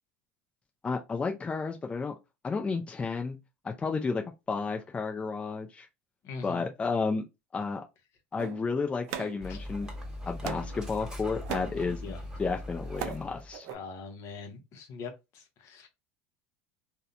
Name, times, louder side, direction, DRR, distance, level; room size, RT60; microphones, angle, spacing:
voice 1, 0.8-2.2 2.4-3.4 3.6-5.9 6.4-7.2 7.5-7.8 8.3-9.9 10.3-12.0 12.4-13.7, left 4 dB, 20° left, 0.4 m, -32 dB
voice 2, 6.2-6.7 9.5-9.6 11.9-12.3 13.7-15.9, left 4 dB, 50° left, 0.7 m, -42 dB
sound 1, 8.4-9.9 10.4-10.8 11.2-11.8 12.6-13.2 13.5-13.7, right 9 dB, 60° right, 0.4 m, -39 dB
Dog, 9.4-13.6, left 1 dB, 10° right, 1.3 m, -40 dB
2.7 x 2.1 x 2.4 m
hypercardioid pair, 90°, 6 cm